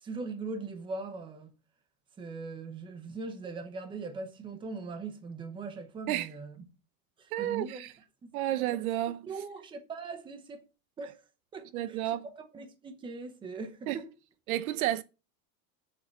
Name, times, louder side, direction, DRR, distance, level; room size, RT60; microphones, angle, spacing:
voice 1, 0.0-1.5 2.2-6.7 7.2-7.8 8.2-8.6 9.3-10.6 11.0-11.2 11.5-12.0 12.3-14.2, right 4 dB, 10° right, 0.9 m, -40 dB
voice 2, 7.3-7.9 8.3-9.2 11.7-12.3 13.9-14.0 14.5-15.0, right 13 dB, 65° right, 0.9 m, -31 dB
7.9 x 7.1 x 6.6 m
supercardioid pair, 175°, 47 cm